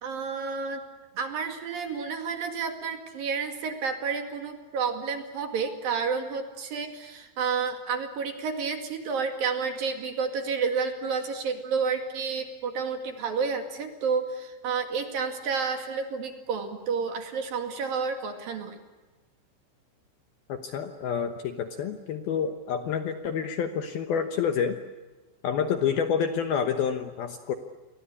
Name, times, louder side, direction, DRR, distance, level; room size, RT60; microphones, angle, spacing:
voice 1, 0.0-0.8 1.2-18.8, right 5 dB, 55° right, 6 dB, 3.5 m, -30 dB
voice 2, 20.5-24.8 25.4-27.5, left 7 dB, 70° left, 7 dB, 2.5 m, -28 dB
30.0 x 23.5 x 8.5 m, 1.2 s
omnidirectional pair, 5.5 m